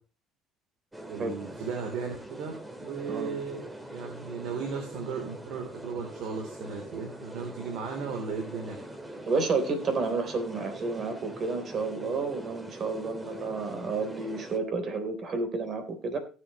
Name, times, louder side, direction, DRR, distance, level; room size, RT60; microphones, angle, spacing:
sound 1, 0.9-14.6, right 1 dB, 10° right, 2.0 m, -43 dB
voice 1, 1.1-2.5 2.8-3.6 3.9-8.8, right 5 dB, 70° right, 2 dB, 3.2 m, -36 dB
voice 2, 9.3-16.2, right 4 dB, 45° right, 7 dB, 3.5 m, -30 dB
17.5 x 8.0 x 3.0 m, 0.35 s
cardioid pair, 115°, 0 cm